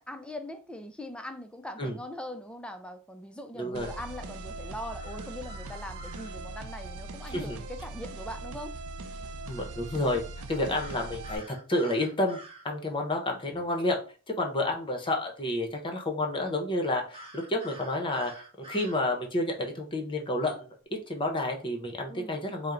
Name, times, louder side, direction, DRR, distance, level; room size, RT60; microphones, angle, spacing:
voice 1, 0.0-8.7 22.1-22.4, left 1 dB, 5° left, 0.3 m, -41 dB
voice 2, 3.6-3.9 7.3-7.6 9.5-10.2 10.5-11.4 11.7-12.4 12.6-14.0 14.3-20.5 20.9-22.7, left 1 dB, 20° left, 0.7 m, -30 dB
sound 1, 3.7-11.4, right 2 dB, 70° right, 0.5 m, -40 dB
sound 2, 5.0-6.3 10.7-12.6 17.1-19.0, right 1 dB, 25° right, 0.9 m, -47 dB
4.3 x 2.1 x 3.7 m
head